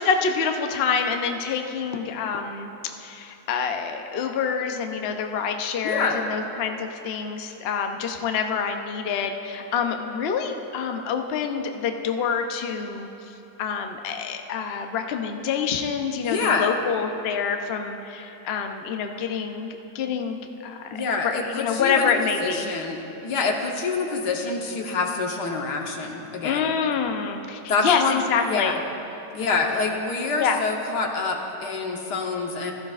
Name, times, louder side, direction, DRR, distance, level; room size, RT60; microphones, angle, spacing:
voice 1, 0.0-2.7 3.0-13.1 13.6-19.7 19.9-20.8 21.2-22.7 26.4-28.8 30.4-30.6, left 6 dB, 55° left, 5 dB, 0.7 m, -26 dB
voice 2, 5.8-6.2 16.2-16.7 20.9-22.1 22.4-26.7 27.7-28.7 29.3-32.7, left 4 dB, 85° left, 2 dB, 1.6 m, -26 dB
16.5 x 14.0 x 2.4 m, 3.0 s
omnidirectional pair, 1.8 m